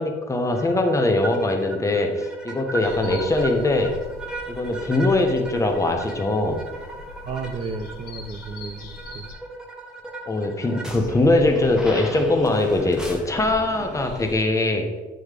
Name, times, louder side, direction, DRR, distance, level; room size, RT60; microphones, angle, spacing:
voice 1, 0.0-4.0 4.5-6.6 10.3-14.9, left 2 dB, 20° left, 4 dB, 1.0 m, -21 dB
sound 1, 0.5-14.4, right 1 dB, 5° right, 1.1 m, -37 dB
sound 2, 2.8-9.3, left 3 dB, 70° left, 1.3 m, -41 dB
voice 2, 3.0-3.3 7.2-9.3, right 4 dB, 35° right, 8 dB, 0.8 m, -33 dB
9.2 x 3.1 x 5.0 m, 1.2 s
cardioid pair, 110°, 17 cm